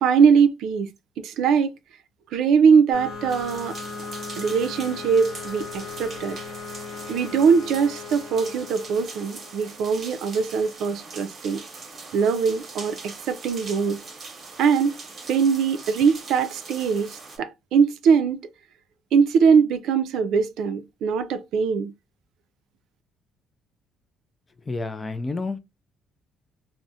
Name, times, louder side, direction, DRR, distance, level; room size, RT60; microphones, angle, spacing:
voice 1, 0.0-0.9 1.2-1.7 2.3-3.8 4.4-6.4 7.1-11.6 12.1-14.0 14.6-14.9 15.3-18.5 19.1-21.9, right 6 dB, 70° right, 0.4 m, -21 dB
sound 1, 2.9-10.3, left 4 dB, 50° left, 1.0 m, -38 dB
sound 2, 3.3-17.4, right 3 dB, 30° right, 0.9 m, -42 dB
voice 2, 24.7-25.6, left 3 dB, 15° left, 0.3 m, -29 dB
2.4 x 2.1 x 3.9 m
cardioid pair, 170°, 0 cm